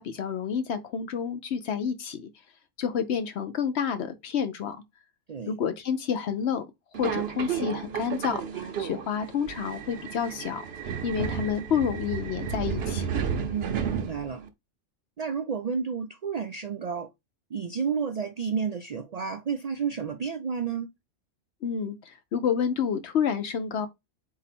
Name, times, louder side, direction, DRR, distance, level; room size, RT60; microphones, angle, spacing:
voice 1, 0.0-2.3 2.8-4.8 5.5-6.6 7.0-10.7 11.0-13.1 21.6-23.9, left 7 dB, 65° left, 0.8 m, -29 dB
Subway metro underground, 6.9-14.5, right 7 dB, 60° right, 0.8 m, -32 dB
voice 2, 13.5-14.4 15.2-17.1 17.5-20.9, right 6 dB, 85° right, 0.3 m, -31 dB
4.1 x 2.7 x 4.2 m
omnidirectional pair, 1.3 m